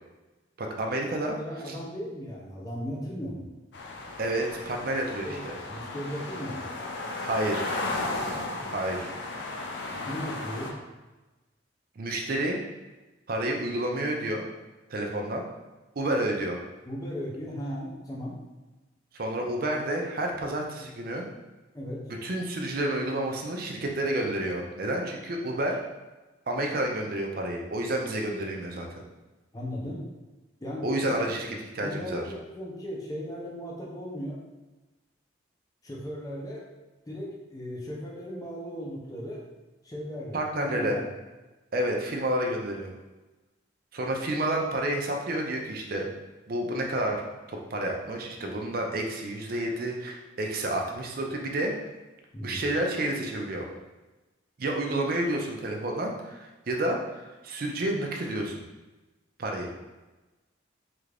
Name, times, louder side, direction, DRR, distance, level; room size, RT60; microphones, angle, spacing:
voice 1, 0.6-1.4 1.7-1.8 4.2-5.3 7.2-7.7 8.6-9.1 12.0-12.6 13.3-14.4 14.9-15.4 16.0-16.6 19.1-21.2 22.2-25.8 26.5-28.9 30.8-31.5 31.7-32.2 40.3-41.0 41.7-42.9 43.9-46.1 46.5-47.2 47.5-51.7 52.4-53.6 54.6-58.6 59.4-59.7, right 1 dB, 50° right, 1 dB, 0.5 m, -30 dB
voice 2, 1.2-3.5 5.2-6.7 10.1-10.7 16.9-18.4 21.7-22.0 29.5-30.1 30.6-31.2 31.8-34.4 35.8-36.6 37.1-39.4 39.8-41.1 52.3-52.7, equal, 20° left, -4 dB, 0.6 m, -37 dB
sound 1, 3.7-10.7, left 2 dB, 65° left, 0.5 m, -35 dB
3.3 x 2.5 x 3.3 m, 1.1 s
head